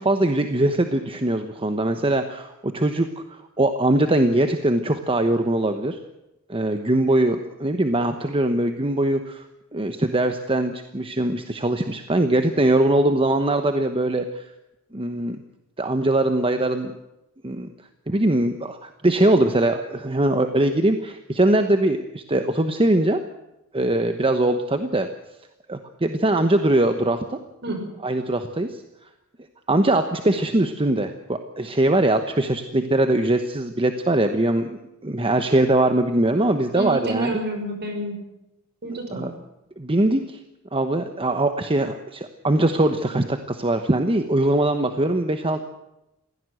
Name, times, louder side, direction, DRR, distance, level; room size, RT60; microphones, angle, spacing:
voice 1, 0.0-6.0 6.5-9.5 9.7-14.4 14.9-15.4 15.8-16.9 17.4-17.7 18.1-23.2 23.7-25.1 25.7-27.2 28.0-28.8 29.7-37.3 39.1-39.3 39.8-40.4 40.7-45.7, right 1 dB, 25° right, 7 dB, 1.1 m, -21 dB
voice 2, 36.7-38.2 38.8-39.3, right 2 dB, 50° right, 4 dB, 5.7 m, -29 dB
22.0 x 16.5 x 7.9 m, 0.90 s
head